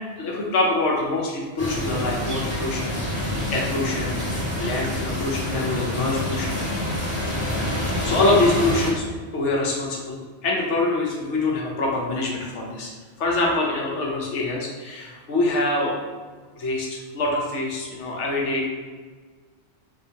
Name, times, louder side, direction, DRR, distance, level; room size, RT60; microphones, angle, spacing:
voice 1, 0.2-6.6 7.9-9.1 9.3-12.9 13.2-16.0 16.6-18.7, left 2 dB, 85° left, -2 dB, 1.1 m, -25 dB
sound 1, 1.6-8.9, left 1 dB, 30° left, 1.3 m, -27 dB
3.8 x 2.5 x 2.8 m, 1.5 s
omnidirectional pair, 1.2 m